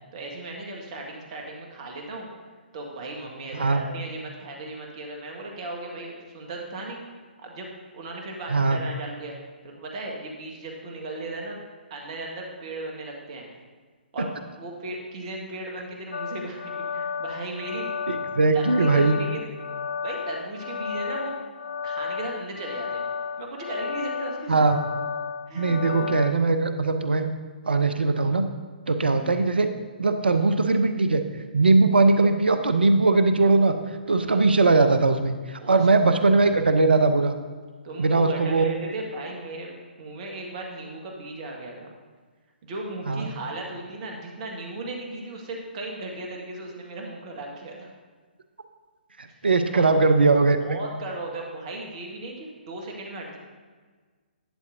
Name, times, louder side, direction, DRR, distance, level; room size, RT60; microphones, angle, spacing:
voice 1, 0.1-2.3 2.7-7.0 7.4-7.7 7.9-9.4 9.6-11.6 11.9-13.5 14.1-17.9 18.5-19.5 20.0-21.4 21.8-23.0 23.4-24.6 25.5-26.1 34.3-34.4 35.6-35.8 37.8-41.9 42.6-47.9 49.7-49.9 50.6-53.4, right 2 dB, 35° right, 0 dB, 1.6 m, -36 dB
sound 1, 16.1-26.3, left 6 dB, 65° left, 0.3 m, -33 dB
voice 2, 18.1-19.2 24.5-24.8 25.5-27.3 27.7-28.5 28.9-29.7 30.0-31.2 31.5-33.7 34.1-37.3 38.0-38.6 43.1-43.3 49.2-50.8, right 3 dB, 70° right, 8 dB, 0.7 m, -20 dB
11.5 x 8.7 x 2.7 m, 1.5 s
figure-of-eight pair, 130°, 6 cm